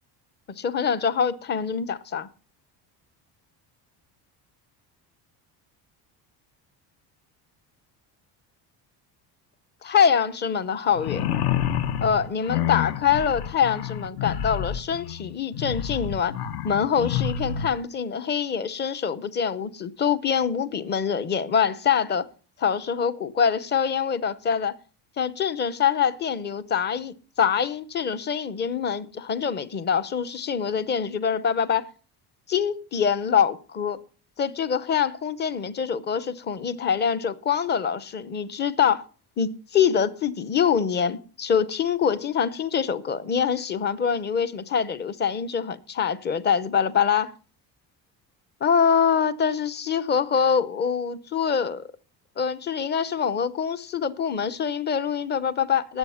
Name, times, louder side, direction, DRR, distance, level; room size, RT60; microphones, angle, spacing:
voice 1, 0.6-2.3 9.8-11.2 12.0-16.3 16.6-22.3 22.6-24.7 25.2-31.8 32.5-34.0 34.4-39.0 39.4-47.3 48.6-51.8 52.4-56.0, left 7 dB, 25° left, 0.7 m, -24 dB
sound 1, 10.9-17.7, left 9 dB, 65° left, 1.3 m, -28 dB
19.0 x 7.9 x 5.7 m
cardioid pair, 175°, 43 cm